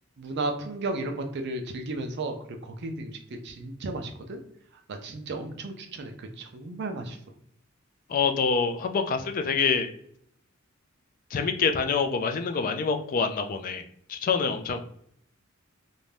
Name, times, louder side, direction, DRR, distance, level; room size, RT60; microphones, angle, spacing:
voice 1, 0.2-2.4 2.6-3.2 3.4-4.4 4.9-7.2, right 2 dB, 55° right, 5 dB, 0.4 m, -34 dB
voice 2, 8.1-9.9 11.3-13.8 14.1-14.8, left 5 dB, 40° left, 7 dB, 0.3 m, -26 dB
2.6 x 2.2 x 3.2 m, 0.67 s
head